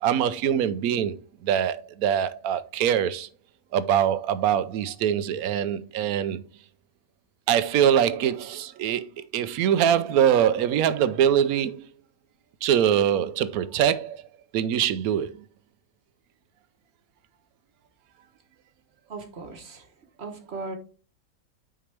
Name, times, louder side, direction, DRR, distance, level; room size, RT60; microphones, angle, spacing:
voice 1, 0.0-3.3 3.7-6.4 7.5-11.9 12.6-14.2 14.5-15.4, right 9 dB, 90° right, 1.1 m, -23 dB
voice 2, 19.1-19.9 20.2-20.8, right 3 dB, 50° right, 1.3 m, -37 dB
9.0 x 4.7 x 3.3 m
omnidirectional pair, 1.5 m